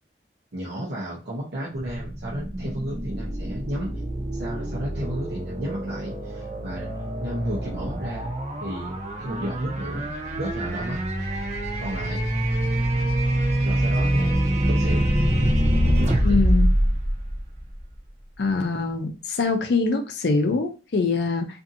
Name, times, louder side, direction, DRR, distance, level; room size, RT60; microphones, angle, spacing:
voice 1, 0.5-3.9 4.3-6.9 7.2-8.3 8.6-10.1 10.4-11.0 11.8-12.2 13.6-15.0 16.0-16.4, equal, 70° right, -5 dB, 0.7 m, -33 dB
sound 1, 1.7-18.0, right 1 dB, 40° right, 0.5 m, -25 dB
voice 2, 16.2-16.7 18.4-21.5, left 3 dB, 70° left, 6 dB, 0.5 m, -23 dB
2.7 x 2.6 x 2.5 m, 0.33 s
head